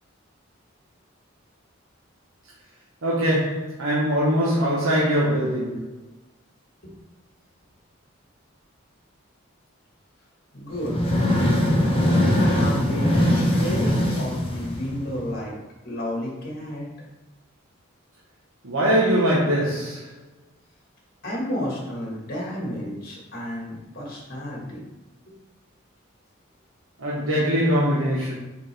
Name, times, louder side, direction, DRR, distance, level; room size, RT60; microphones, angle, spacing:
voice 1, 3.0-5.9 18.6-20.1 27.0-28.3, equal, 80° right, -6 dB, 1.2 m, -22 dB
voice 2, 10.5-11.0 12.4-15.5 15.8-16.9 21.2-24.8 25.3-25.4, left 1 dB, 50° left, -3 dB, 1.8 m, -31 dB
sound 1, 10.7-15.3, left 1 dB, 30° left, 1.2 m, -21 dB
6.0 x 4.8 x 3.4 m, 0.99 s
head